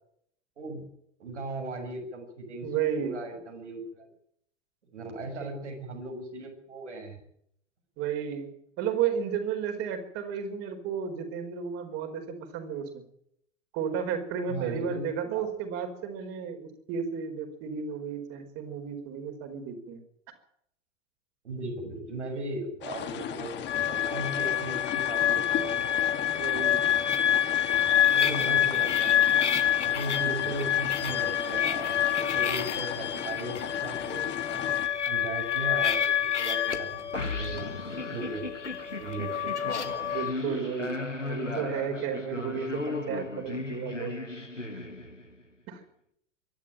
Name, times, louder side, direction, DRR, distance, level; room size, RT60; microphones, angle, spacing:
voice 1, 0.6-0.9 1.2-2.7 2.9-4.1 4.9-7.2 14.5-15.5 21.4-25.8 28.0-29.5 29.8-34.7 35.1-37.7 38.0-38.5 39.0-39.5, right 2 dB, 70° right, 3 dB, 6.8 m, -37 dB
voice 2, 2.6-3.2 5.3-5.6 8.0-8.5 8.8-13.0 13.7-20.0 26.4-26.9 28.4-28.8 40.1-41.0 41.3-44.1 45.7-45.8, right 7 dB, 40° right, 5 dB, 4.9 m, -33 dB
sound 1, 22.8-34.9, left 10 dB, 30° left, 2.3 m, -37 dB
sound 2, 23.7-40.3, left 10 dB, 70° left, 2.1 m, -27 dB
sound 3, 37.1-45.4, left 2 dB, 90° left, 1.9 m, -36 dB
23.5 x 12.5 x 9.0 m, 0.72 s
figure-of-eight pair, 90°, 36 cm